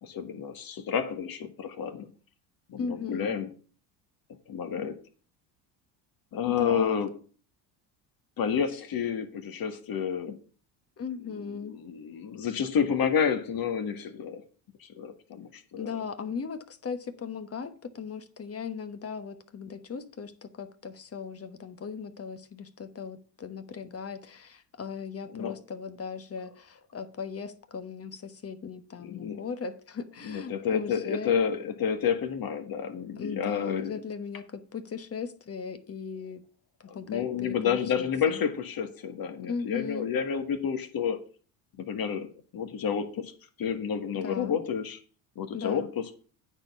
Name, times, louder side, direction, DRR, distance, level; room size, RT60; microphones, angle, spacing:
voice 1, 0.0-2.1 2.7-3.5 4.5-5.0 6.3-7.1 8.4-10.4 11.5-14.4 14.8-16.0 25.3-25.5 29.0-29.4 30.2-34.0 36.9-41.2 41.8-43.3 43.6-45.0 45.3-46.1, left 7 dB, 45° left, 8 dB, 1.7 m, -30 dB
voice 2, 2.8-3.3 6.4-7.0 11.0-11.7 15.8-31.3 33.2-36.4 36.8-38.4 39.4-40.1 44.1-44.5 45.5-45.9, left 6 dB, 30° left, 11 dB, 1.1 m, -38 dB
9.6 x 4.5 x 6.9 m, 0.40 s
supercardioid pair, 80°, 50 cm